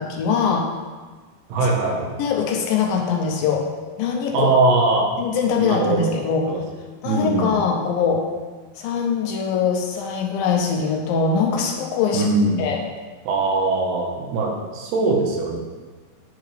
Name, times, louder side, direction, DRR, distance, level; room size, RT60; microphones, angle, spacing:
voice 1, 0.1-0.7 2.2-3.7 4.0-4.5 5.2-6.5 7.0-8.2 8.8-12.3 12.6-12.8, left 6 dB, 80° left, 1 dB, 2.2 m, -22 dB
voice 2, 1.5-2.1 4.3-5.1 5.6-6.2 6.5-6.6 7.0-7.6 12.1-12.7 13.3-15.6, right 3 dB, 80° right, 0 dB, 3.1 m, -21 dB
9.3 x 5.9 x 3.2 m, 1.4 s
omnidirectional pair, 4.6 m